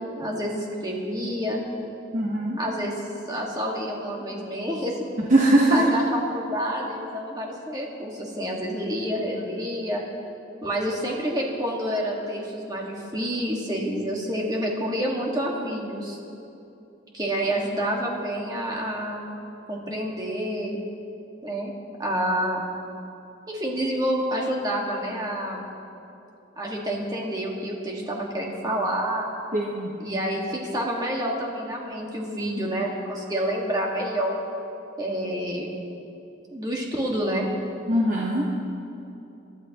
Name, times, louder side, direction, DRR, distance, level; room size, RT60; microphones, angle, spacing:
voice 1, 0.0-1.6 2.6-3.0 3.3-5.0 5.7-10.0 10.6-16.2 17.1-19.2 19.7-20.8 21.4-21.7 22.0-22.6 23.5-25.6 26.6-29.3 30.0-34.3 35.0-35.7 36.5-37.5, equal, 20° right, -2 dB, 1.7 m, -28 dB
voice 2, 2.1-2.6 5.2-5.8 29.5-29.9 37.9-38.4, right 1 dB, 40° right, -3 dB, 1.1 m, -21 dB
24.0 x 11.5 x 3.0 m, 2.8 s
head